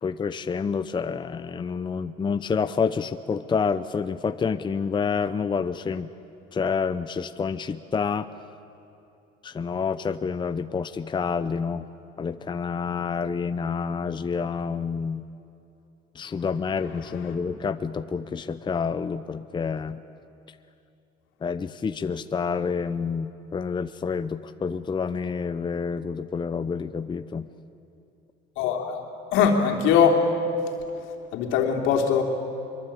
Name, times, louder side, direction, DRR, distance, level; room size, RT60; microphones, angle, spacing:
voice 1, 0.0-6.1 6.5-8.3 9.4-11.8 12.2-15.2 16.1-20.0 21.4-27.5, left 5 dB, 25° left, 11 dB, 0.7 m, -28 dB
voice 2, 28.6-29.0 29.3-30.2 31.3-32.2, left 7 dB, 80° left, 2 dB, 3.3 m, -21 dB
24.5 x 23.0 x 8.8 m, 2.7 s
cardioid pair, 105°, 20 cm